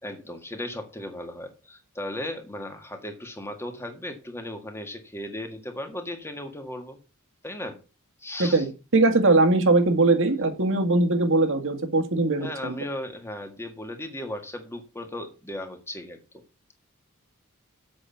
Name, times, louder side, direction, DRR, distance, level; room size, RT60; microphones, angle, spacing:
voice 1, 0.0-7.0 7.4-7.8 8.2-8.6 12.4-16.4, left 1 dB, 10° left, 1.8 m, -36 dB
voice 2, 8.4-12.8, right 2 dB, 60° right, 1.9 m, -21 dB
8.0 x 6.1 x 7.0 m
head